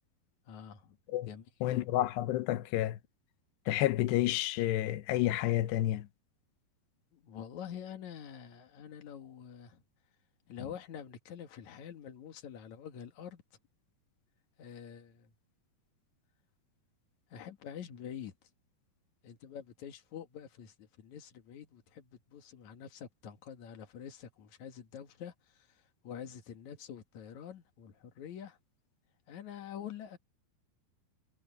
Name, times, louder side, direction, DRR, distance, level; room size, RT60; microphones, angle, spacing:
voice 1, 0.5-1.0 1.3-1.4 7.1-9.8 10.5-13.4 14.6-15.3 17.3-18.5 19.2-28.6 29.3-30.2, left 8 dB, 55° left, 2.6 m, -46 dB
voice 2, 1.6-3.0 3.7-6.1, left 14 dB, 90° left, 3.0 m, -30 dB
omnidirectional pair, 4.8 m